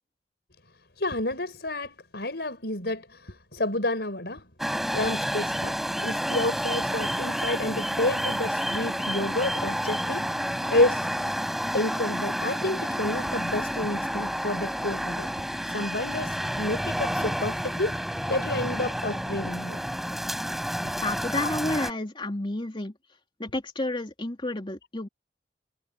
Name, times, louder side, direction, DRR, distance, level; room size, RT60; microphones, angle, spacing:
voice 1, 1.0-4.5 4.9-11.3 11.7-15.3 15.6-18.0 18.3-19.8 21.4-21.5, left 2 dB, 65° left, 7.0 m, -30 dB
sound 1, 4.6-21.9, equal, ahead, 5.6 m, -30 dB
voice 2, 21.0-22.9 23.4-25.1, left 1 dB, 30° left, 2.8 m, -31 dB
head